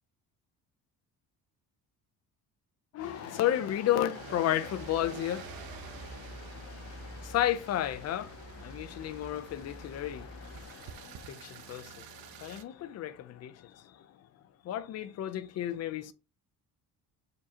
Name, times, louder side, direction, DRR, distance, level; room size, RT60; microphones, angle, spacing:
voice 1, 2.9-13.5 14.7-16.1, left 12 dB, 45° left, 0.6 m, -33 dB
sound 1, 3.0-12.6, right 9 dB, 65° right, 0.9 m, -49 dB
sound 2, 4.8-10.7, equal, 10° right, 3.4 m, -49 dB
7.4 x 4.6 x 2.8 m
cardioid pair, 160°, 37 cm